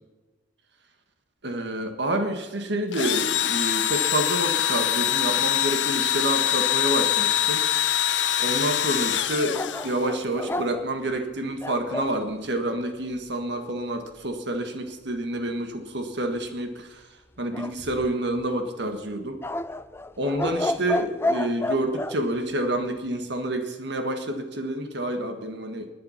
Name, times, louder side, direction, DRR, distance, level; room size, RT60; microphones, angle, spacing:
voice 1, 1.4-7.7 8.4-17.1 17.4-19.4 20.2-25.9, right 1 dB, 65° right, 6 dB, 1.7 m, -28 dB
Engine / Drill, 2.9-10.2, left 11 dB, 75° left, 0.7 m, -24 dB
sound 1, 9.5-12.2 17.5-18.4 19.4-22.2, left 2 dB, 15° left, 0.5 m, -30 dB
20.5 x 10.5 x 5.8 m, 1.2 s
head